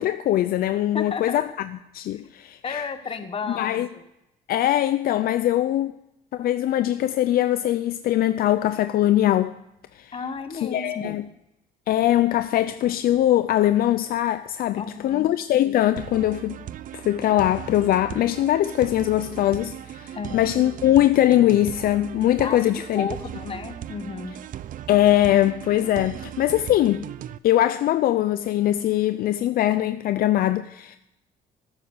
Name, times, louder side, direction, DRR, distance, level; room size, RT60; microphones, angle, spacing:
voice 1, 0.0-1.5 1.9-2.9 3.5-3.9 4.5-5.9 6.3-9.6 10.0-10.1 10.6-11.2 11.9-16.6 16.9-23.1 24.9-27.1 27.4-31.0, left 13 dB, 60° left, 0.5 m, -21 dB
voice 2, 0.9-1.4 2.1-2.2 2.6-4.0 10.1-11.2 14.8-15.3 20.1-20.5 22.4-24.4, left 5 dB, 35° left, 1.5 m, -33 dB
sound 1, 16.0-27.4, right 11 dB, 50° right, 0.6 m, -38 dB
13.0 x 9.7 x 6.6 m
cardioid pair, 110°, 17 cm